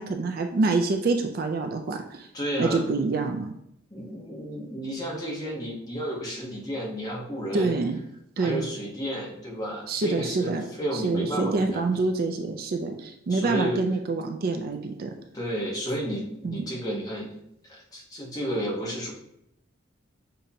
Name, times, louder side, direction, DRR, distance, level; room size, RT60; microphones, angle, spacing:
voice 1, 0.0-2.3 2.6-3.5 7.5-8.0 8.4-8.7 9.9-10.6 10.9-15.1 16.4-16.6, right 3 dB, 45° right, 5 dB, 0.4 m, -26 dB
voice 2, 2.3-2.9 3.9-7.8 8.4-12.1 13.3-13.8 15.3-17.3 17.6-19.1, equal, 20° left, -3 dB, 1.1 m, -32 dB
6.6 x 2.7 x 2.7 m, 0.78 s
head